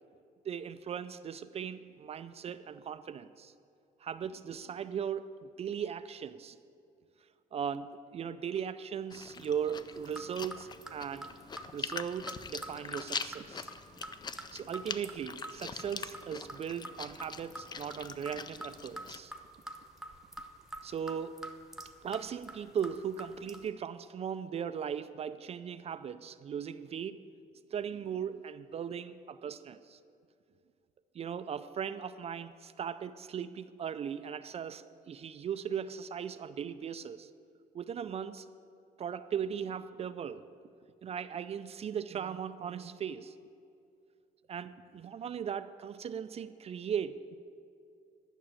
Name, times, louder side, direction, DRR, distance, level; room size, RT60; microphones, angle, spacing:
voice 1, 0.4-3.5 4.0-6.6 7.5-11.3 11.7-13.7 14.5-19.3 20.8-21.4 22.0-27.2 27.7-30.0 31.1-37.3 37.7-38.5 39.0-40.4 41.0-43.3 44.5-47.4, right 8 dB, 35° right, 12 dB, 0.4 m, -38 dB
Chewing mastication, 9.1-19.2, left 5 dB, 25° left, 0.4 m, -43 dB
sound 1, 9.9-23.7, right 1 dB, 5° right, 0.9 m, -48 dB
11.0 x 6.1 x 8.9 m, 2.5 s
cardioid pair, 110°, 17 cm